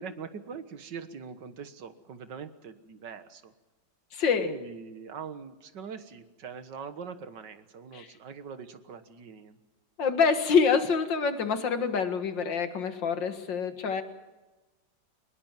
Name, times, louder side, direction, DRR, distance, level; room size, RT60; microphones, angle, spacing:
voice 1, 0.0-3.5 4.4-9.6, right 6 dB, 75° right, 10 dB, 2.0 m, -42 dB
voice 2, 4.1-4.5 7.9-8.1 10.0-14.0, left 5 dB, 85° left, 8 dB, 2.4 m, -26 dB
23.5 x 20.5 x 7.5 m, 1.1 s
omnidirectional pair, 1.9 m